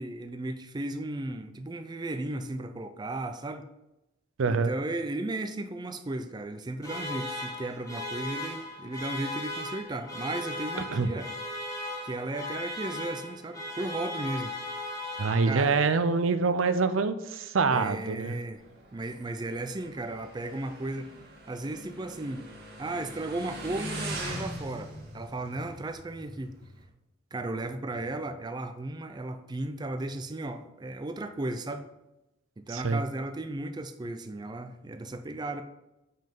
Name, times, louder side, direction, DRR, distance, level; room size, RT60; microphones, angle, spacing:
voice 1, 0.0-3.6 4.5-11.3 12.0-14.5 15.5-15.8 17.7-18.6 18.9-21.1 21.5-22.5 22.8-26.6 27.3-31.9 32.6-35.6, right 2 dB, 20° right, 8 dB, 0.4 m, -35 dB
voice 2, 4.4-4.7 10.9-11.1 15.2-18.3 32.7-33.0, right 4 dB, 85° right, 12 dB, 0.5 m, -25 dB
sound 1, 6.8-15.8, left 1 dB, 15° left, 1.5 m, -37 dB
Motorcycle, 18.5-26.8, right 1 dB, 50° right, 1.5 m, -42 dB
5.7 x 5.3 x 5.2 m, 0.94 s
head